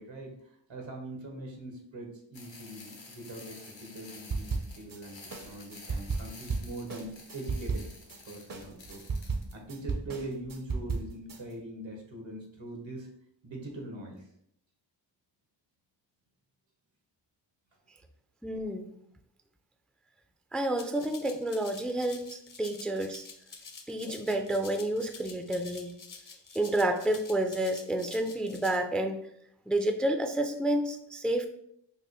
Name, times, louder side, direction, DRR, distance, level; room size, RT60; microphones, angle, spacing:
voice 1, 0.0-5.2 5.4-7.9 8.2-13.1 13.4-14.3, right 1 dB, 85° right, 1 dB, 1.1 m, -42 dB
sound 1, 2.3-9.5, left 3 dB, 80° left, 0.9 m, -51 dB
sound 2, 4.3-5.0 5.3-8.2 8.5-11.4, right 4 dB, 50° right, 0.6 m, -34 dB
voice 2, 18.4-18.9 20.5-23.3 23.9-25.9 26.5-29.3 29.7-31.5, right 1 dB, ahead, 6 dB, 0.3 m, -30 dB
Rattle (instrument), 20.8-28.8, left 5 dB, 45° left, 0.6 m, -48 dB
5.3 x 2.1 x 3.0 m, 0.71 s
wide cardioid pair, 50°, 44 cm